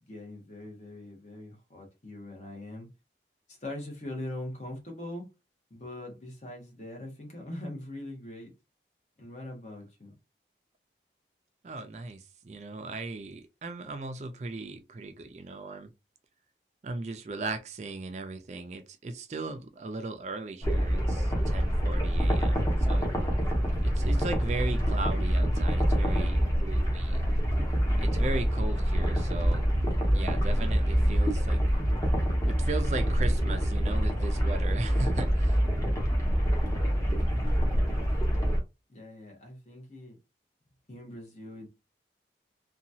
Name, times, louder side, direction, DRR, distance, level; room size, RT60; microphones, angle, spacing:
voice 1, 0.0-2.9 3.5-5.3 5.7-8.5 9.2-10.1 38.9-40.2 40.9-41.7, left 1 dB, 40° left, 1.0 m, -41 dB
voice 2, 11.6-15.9 16.8-23.1 23.8-27.3 28.0-29.7 30.1-31.6 32.5-35.6, right 3 dB, 40° right, 0.3 m, -37 dB
sound 1, 20.6-38.6, equal, 20° left, 0.8 m, -26 dB
2.8 x 2.3 x 2.6 m
head